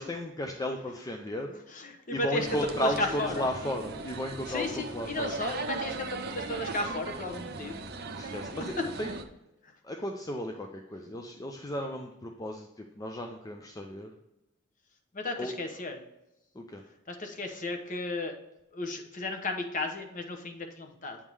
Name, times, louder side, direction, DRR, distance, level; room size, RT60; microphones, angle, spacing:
voice 1, 0.0-1.6 2.1-5.3 8.2-9.2 9.8-14.1 15.4-15.5 16.5-16.8, left 1 dB, 15° left, 2 dB, 0.4 m, -34 dB
voice 2, 1.7-2.5 2.8-3.4 4.5-7.8 8.2-8.3 15.1-16.0 17.1-18.3 18.7-21.2, left 2 dB, 35° left, 4 dB, 0.9 m, -34 dB
sound 1, 2.4-9.2, right 3 dB, 45° right, 0.6 m, -38 dB
8.5 x 3.6 x 4.7 m, 0.90 s
head